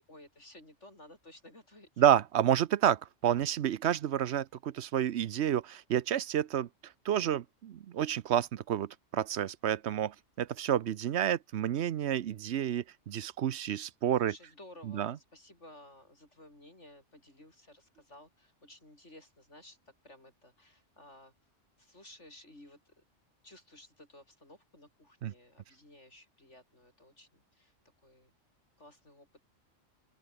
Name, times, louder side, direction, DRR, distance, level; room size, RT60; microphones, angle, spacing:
voice 1, 0.0-2.0 14.2-21.3 21.8-22.9 23.4-27.7 28.0-28.3 28.8-29.4, left 1 dB, 70° left, 8.6 m, -55 dB
voice 2, 2.0-6.7 7.0-14.3 14.9-15.1 25.2-25.3, right 10 dB, 65° right, 0.9 m, -29 dB
open air
omnidirectional pair, 1.3 m